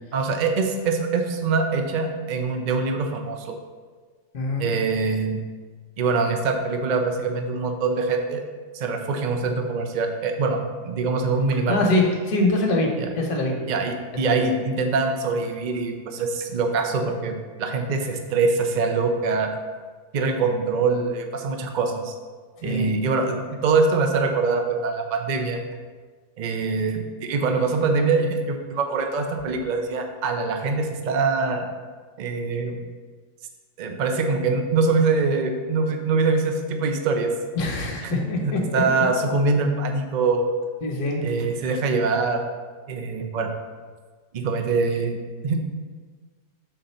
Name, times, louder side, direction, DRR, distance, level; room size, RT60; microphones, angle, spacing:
voice 1, 0.1-3.6 4.6-5.4 6.0-8.4 8.7-10.6 10.8-11.8 13.0-13.1 13.7-19.5 20.1-22.1 22.6-25.6 26.4-31.7 32.2-32.8 33.8-37.3 38.0-40.5 41.2-42.4 42.9-43.5 44.3-45.2 45.4-45.6, right 4 dB, 65° right, 4 dB, 0.4 m, -24 dB
voice 2, 4.3-4.7 11.5-12.9 13.1-13.6 14.1-14.5 22.6-22.9 37.5-38.6 40.8-41.2, left 2 dB, 70° left, 0 dB, 1.6 m, -24 dB
6.8 x 3.9 x 5.5 m, 1.5 s
omnidirectional pair, 1.7 m